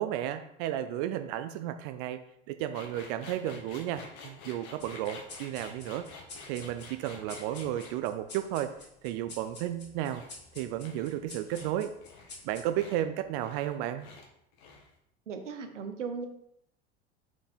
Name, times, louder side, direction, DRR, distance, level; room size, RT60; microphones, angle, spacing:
voice 1, 0.0-2.2 2.5-6.1 6.5-8.7 9.0-10.2 10.6-11.9 12.4-14.1, right 12 dB, 50° right, 9 dB, 0.5 m, -33 dB
sound 1, 2.7-8.0 10.1-10.3 10.8-11.2 11.5-11.7 12.0-12.4 12.7-13.0 13.4-13.7 14.0-14.3 14.5-15.0, left 4 dB, 50° left, 1.7 m, -49 dB
sound 2, 4.8-13.7, left 3 dB, 30° left, 2.8 m, -50 dB
voice 2, 15.3-16.3, right 5 dB, 80° right, 7 dB, 1.0 m, -37 dB
5.7 x 4.8 x 4.3 m, 0.76 s
figure-of-eight pair, 80°, 36 cm